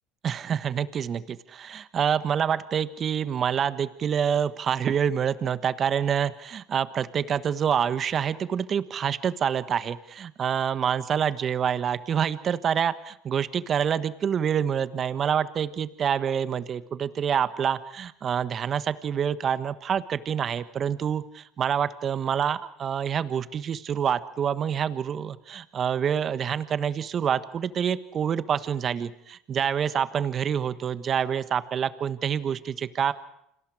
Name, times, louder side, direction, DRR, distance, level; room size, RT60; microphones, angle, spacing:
voice 1, 0.2-33.1, right 8 dB, 40° right, 13 dB, 1.4 m, -27 dB
29.5 x 26.5 x 5.0 m, 0.77 s
hypercardioid pair, 70°, 0 cm